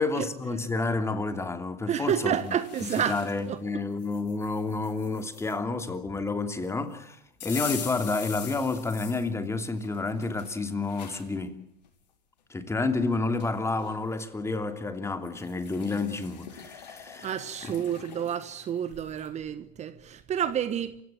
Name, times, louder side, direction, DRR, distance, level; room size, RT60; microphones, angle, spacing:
voice 1, 0.0-2.6 3.0-11.6 12.5-17.3 17.6-17.7, left 3 dB, 15° left, 2.9 m, -30 dB
voice 2, 1.9-3.2 3.5-3.6 17.2-21.0, right 9 dB, 30° right, 1.3 m, -29 dB
sound 1, 2.3-3.5 4.0-5.6 7.4-9.3 9.8-11.3 11.8-11.9 13.0-13.1 13.4-14.0 15.2-19.3, left 8 dB, 85° left, 5.2 m, -43 dB
28.0 x 16.5 x 9.1 m
hypercardioid pair, 105°, 21 cm